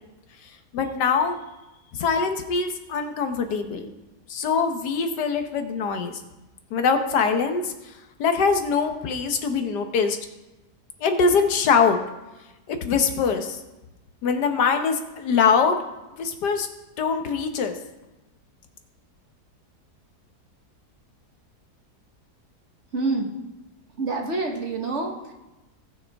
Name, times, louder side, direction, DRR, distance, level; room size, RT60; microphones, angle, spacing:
voice 1, 0.7-1.4 1.9-3.9 4.3-6.1 6.7-7.7 8.2-10.2 11.0-12.0 12.7-13.6 14.2-15.8 16.2-16.7 17.0-17.7, left 5 dB, 85° left, 6 dB, 1.6 m, -23 dB
voice 2, 22.9-23.3 23.9-25.3, right 3 dB, 45° right, 2 dB, 1.5 m, -27 dB
18.5 x 6.5 x 3.5 m, 1.0 s
omnidirectional pair, 1.7 m